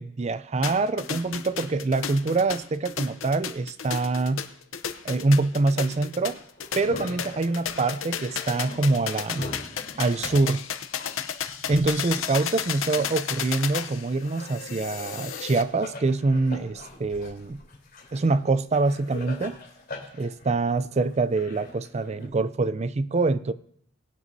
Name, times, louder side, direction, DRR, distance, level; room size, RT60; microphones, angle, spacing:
voice 1, 0.0-4.4 5.0-6.4 6.8-9.5 10.0-10.6 11.7-17.6 18.1-19.6 20.1-23.5, right 3 dB, 35° right, 0.4 m, -25 dB
sound 1, 0.6-15.6, left 8 dB, 80° left, 0.8 m, -33 dB
sound 2, 6.3-7.7 8.3-8.9 9.3-13.9 14.2-22.3, left 2 dB, 50° left, 3.8 m, -43 dB
22.0 x 9.4 x 2.7 m
head